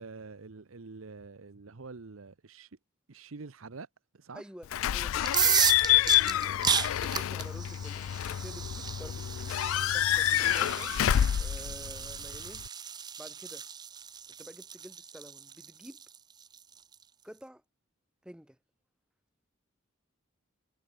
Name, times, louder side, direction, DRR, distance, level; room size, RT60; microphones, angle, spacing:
voice 1, 0.0-2.7 3.1-3.9 4.1-4.4, right 4 dB, 75° right, 0.9 m, -46 dB
voice 2, 4.3-5.5 6.0-8.0 8.3-9.6 9.9-10.9 11.4-12.7 13.2-13.6 14.4-16.0 17.2-17.6 18.2-18.6, equal, 5° right, 2.2 m, -49 dB
Slam / Squeak / Alarm, 4.7-12.7, left 12 dB, 70° left, 0.3 m, -28 dB
sound 1, 5.2-16.9, right 8 dB, 20° right, 0.4 m, -33 dB
head